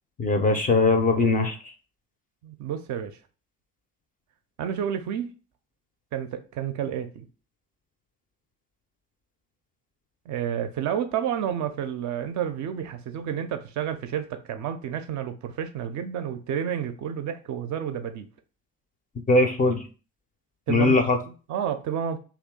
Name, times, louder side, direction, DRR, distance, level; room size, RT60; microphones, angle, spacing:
voice 1, 0.2-1.6 19.3-19.8 20.7-21.2, left 2 dB, 20° left, 0.4 m, -20 dB
voice 2, 2.4-3.2 4.6-5.3 6.1-7.2 10.3-18.3 20.7-21.0 21.3-22.2, right 9 dB, 40° right, 0.4 m, -30 dB
2.7 x 2.3 x 3.6 m
figure-of-eight pair, 50°, 44 cm